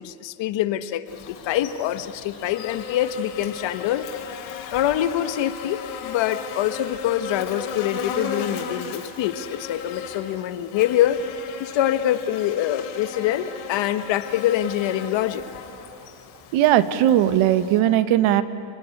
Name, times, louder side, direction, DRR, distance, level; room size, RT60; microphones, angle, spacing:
voice 1, 0.0-4.1 4.7-11.2 11.6-15.4, left 12 dB, 65° left, 10 dB, 1.4 m, -25 dB
Buzz, 1.1-17.8, left 6 dB, 85° left, 4.5 m, -36 dB
voice 2, 16.5-18.4, right 12 dB, 75° right, 12 dB, 1.4 m, -18 dB
30.0 x 20.0 x 9.8 m, 2.6 s
cardioid pair, 125°, 49 cm